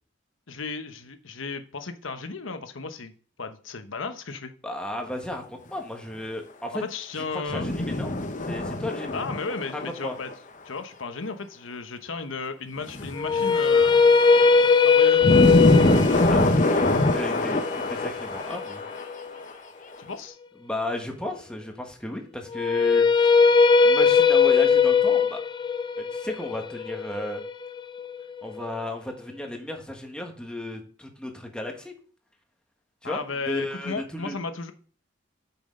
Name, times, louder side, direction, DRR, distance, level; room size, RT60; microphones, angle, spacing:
voice 1, 0.5-4.5 6.7-7.7 9.1-10.3 10.6-14.0 14.8-15.4 20.0-20.4 33.0-34.7, left 4 dB, 80° left, 8 dB, 1.0 m, -34 dB
voice 2, 4.6-6.8 7.1-8.1 8.4-9.2 9.7-10.1 16.1-16.4 17.1-18.8 20.6-23.3 23.8-25.4 26.0-27.4 28.4-31.9 33.0-34.3, left 1 dB, 5° left, 2 dB, 1.4 m, -34 dB
sound 1, 7.5-9.9 10.3-10.4 12.9-19.2 19.5-19.6, left 1 dB, 40° left, 0.9 m, -24 dB
sound 2, 13.2-19.3 22.5-28.6, left 5 dB, 25° left, 0.4 m, -20 dB
8.6 x 6.1 x 3.8 m, 0.43 s
head